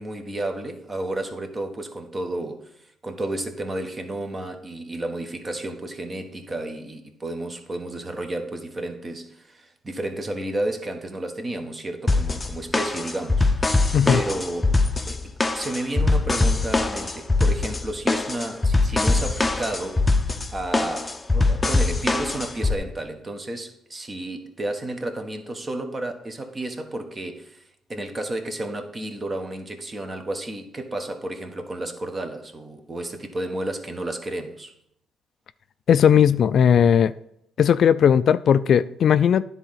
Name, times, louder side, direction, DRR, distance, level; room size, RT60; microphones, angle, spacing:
voice 1, 0.0-13.8 14.0-14.8 15.1-27.6 27.9-34.7, right 1 dB, 30° right, 1.3 m, -32 dB
sound 1, 12.1-22.8, left 3 dB, 20° left, 0.7 m, -22 dB
voice 2, 35.9-37.1 37.6-39.4, left 8 dB, 60° left, 0.3 m, -17 dB
10.0 x 3.9 x 5.7 m
cardioid pair, 80°, 0 cm